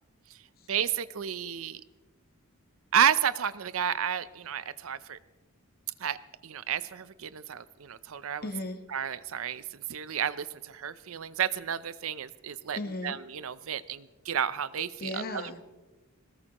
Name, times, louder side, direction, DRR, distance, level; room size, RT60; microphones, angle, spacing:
voice 1, 0.7-1.8 2.9-5.2 6.0-6.2 6.4-8.5 8.9-12.8 13.0-15.6, right 8 dB, 65° right, 15 dB, 0.6 m, -31 dB
voice 2, 8.4-8.8 12.8-13.2 15.0-15.6, left 2 dB, 45° left, 8 dB, 1.2 m, -36 dB
21.0 x 18.5 x 3.0 m, 1.2 s
head